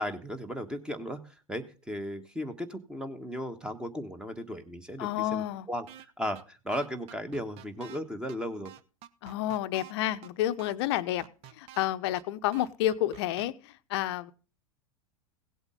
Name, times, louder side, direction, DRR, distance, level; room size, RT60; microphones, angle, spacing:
voice 1, 0.0-5.8 6.2-8.7, equal, 5° right, 9 dB, 1.4 m, -36 dB
voice 2, 5.0-5.7 9.2-11.3 11.6-14.3, left 13 dB, 50° left, 13 dB, 0.8 m, -30 dB
sound 1, 5.9-6.1 6.3-6.4 6.7-8.0 8.3-8.4 8.6-9.9 10.2-10.3 10.6-11.9 12.2-12.3 12.5-13.5, right 11 dB, 35° right, 0.8 m, -48 dB
17.0 x 8.0 x 3.8 m, 0.35 s
figure-of-eight pair, 90°, 18 cm